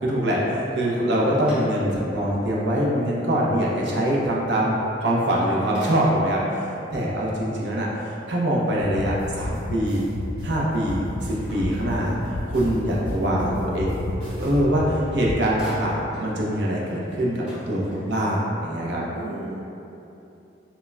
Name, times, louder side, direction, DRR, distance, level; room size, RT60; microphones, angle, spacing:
voice 1, 0.0-4.8 5.0-6.4 6.9-7.9 8.3-10.1 10.4-12.2 12.5-14.0 14.4-19.0, equal, 75° right, -4 dB, 0.6 m, -23 dB
sound 1, 1.4-2.2 2.7-2.8 5.1-5.4 5.7-6.5 11.3-12.5 14.6-14.7 15.0-16.3 16.7-16.8 17.0-18.3, equal, 5° right, 0.9 m, -43 dB
voice 2, 6.9-7.5 12.9-14.0 17.9-18.1 19.1-19.8, right 2 dB, 30° right, -12 dB, 0.6 m, -37 dB
sound 2, 8.9-15.3, left 1 dB, 55° left, 0.4 m, -32 dB
sound 3, 9.2-14.8, equal, 55° right, 1.1 m, -43 dB
5.1 x 2.2 x 2.3 m, 2.9 s
head